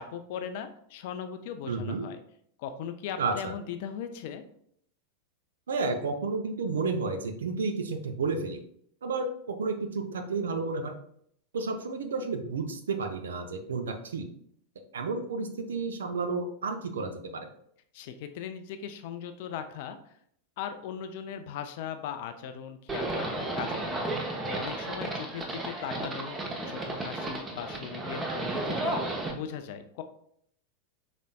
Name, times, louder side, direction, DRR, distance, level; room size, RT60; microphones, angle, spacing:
voice 1, 0.0-2.2 2.6-4.4 17.9-20.0 20.6-24.1 24.5-26.4 26.6-30.0, left 8 dB, 50° left, 8 dB, 0.5 m, -39 dB
voice 2, 1.7-2.1 3.2-3.5 5.7-8.6 9.0-10.9 11.5-14.3 14.9-17.5, right 4 dB, 65° right, 6 dB, 0.6 m, -31 dB
Livestock farm animals working animals, 22.9-29.3, right 2 dB, 15° right, 0.8 m, -33 dB
5.2 x 4.0 x 2.2 m, 0.67 s
figure-of-eight pair, 90°, 0 cm